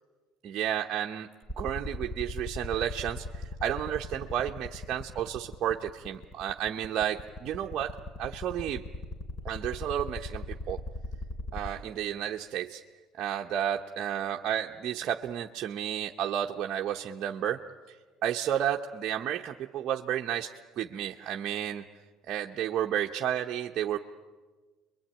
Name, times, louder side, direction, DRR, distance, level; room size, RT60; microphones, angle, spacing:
voice 1, 0.4-1.3 1.6-8.8 9.4-10.8 11.5-12.8 13.2-17.6 18.2-21.8 22.3-24.0, right 10 dB, 55° right, 1 dB, 0.9 m, -32 dB
sound 1, 1.5-11.7, left 2 dB, 20° left, 4.5 m, -36 dB
28.5 x 23.0 x 8.8 m, 1.4 s
supercardioid pair, 90°, 0 cm